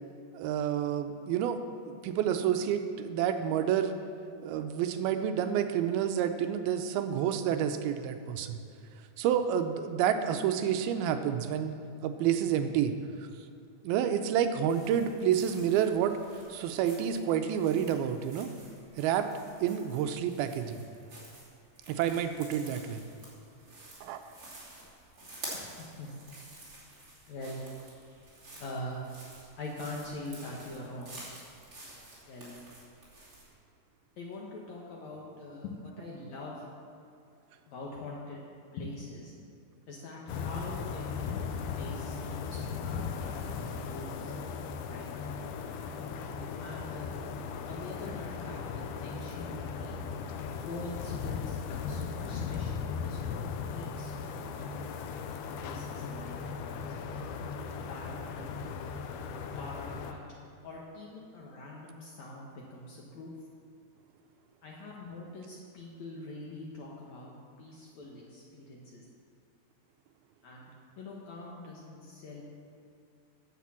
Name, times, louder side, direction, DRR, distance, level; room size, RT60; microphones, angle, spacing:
voice 1, 0.3-1.6 1.9-4.0 4.4-8.6 9.2-11.8 12.0-12.9 13.8-16.2 16.5-18.5 19.0-19.3 19.6-20.8 21.9-23.0 24.0-24.2, right 9 dB, 80° right, 7 dB, 2.4 m, -29 dB
sound 1, 14.7-33.5, right 2 dB, 25° right, 2.6 m, -50 dB
voice 2, 25.2-26.1 27.3-27.7 28.6-29.0 29.6-31.2 32.3-32.6 34.2-36.6 37.7-38.4 38.7-39.3 39.9-44.3 44.9-45.1 46.6-47.2 47.7-50.1 50.6-54.9 55.6-57.2 57.9-58.6 59.6-60.2 60.6-63.3 64.6-67.3 67.6-69.1 70.4-72.4, left 2 dB, 65° left, -3 dB, 1.9 m, -44 dB
sound 2, 40.3-60.1, left 6 dB, 85° left, 1.8 m, -37 dB
10.0 x 7.4 x 7.3 m, 2.5 s
omnidirectional pair, 4.5 m